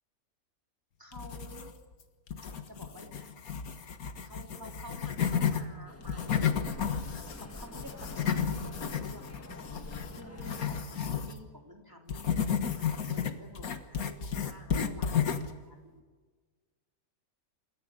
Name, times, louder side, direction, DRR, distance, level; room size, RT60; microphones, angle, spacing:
voice 1, 1.0-1.7 2.7-3.3 4.2-6.9 7.3-9.4 10.1-16.0, equal, 15° right, 2 dB, 3.0 m, -51 dB
sound 1, 1.1-1.9 2.3-5.6 6.0-11.4 12.1-15.6, left 7 dB, 80° left, 1.9 m, -32 dB
sound 2, 5.9-10.8, left 1 dB, 10° left, 1.3 m, -47 dB
28.0 x 14.5 x 9.9 m, 1.4 s
omnidirectional pair, 1.5 m